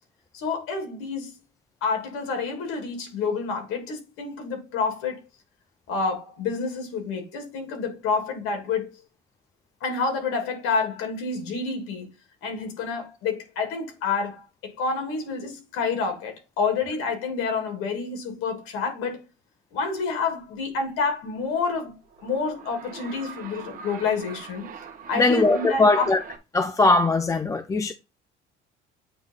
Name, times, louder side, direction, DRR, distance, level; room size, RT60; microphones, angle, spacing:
voice 1, 0.3-1.3 1.8-5.2 5.9-8.9 9.8-12.1 12.4-19.2 19.7-21.9 22.2-24.7 25.1-26.1, left 4 dB, 85° left, 2.8 m, -28 dB
sound 1, 22.0-26.4, right 6 dB, 40° right, 1.2 m, -42 dB
voice 2, 25.2-26.2 26.5-27.9, left 3 dB, 15° left, 0.4 m, -20 dB
8.7 x 3.1 x 3.8 m
cardioid pair, 150°, 21 cm